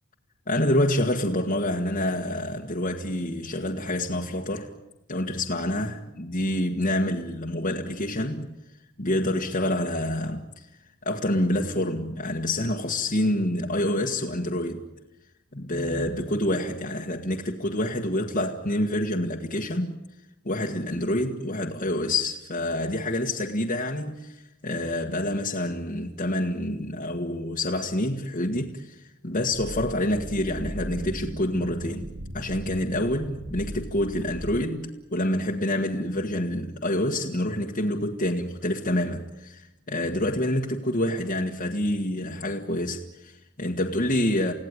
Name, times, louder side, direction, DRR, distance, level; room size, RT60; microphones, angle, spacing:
voice 1, 0.5-4.7 5.1-8.5 9.0-10.7 11.0-14.8 15.5-19.9 20.4-32.1 32.3-44.5, left 1 dB, 35° left, 1.7 m, -27 dB
sound 1, 29.5-34.6, equal, 50° right, 1.5 m, -37 dB
29.5 x 17.0 x 9.9 m
head